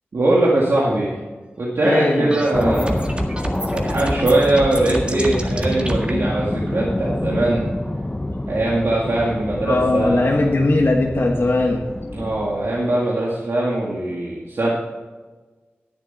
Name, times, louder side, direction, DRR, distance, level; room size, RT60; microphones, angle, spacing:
voice 1, 0.1-1.2 1.6-3.1 3.7-7.6 8.5-10.5 12.1-14.7, right 1 dB, 75° right, -5 dB, 2.0 m, -21 dB
voice 2, 1.8-2.4 9.6-11.8, left 2 dB, 60° left, -1 dB, 1.3 m, -19 dB
sound 1, 1.8-6.1, right 1 dB, 25° right, 1.8 m, -28 dB
sound 2, 2.5-12.9, left 1 dB, 20° left, 0.9 m, -27 dB
11.0 x 9.2 x 4.2 m, 1.3 s
cardioid pair, 45°, 4 cm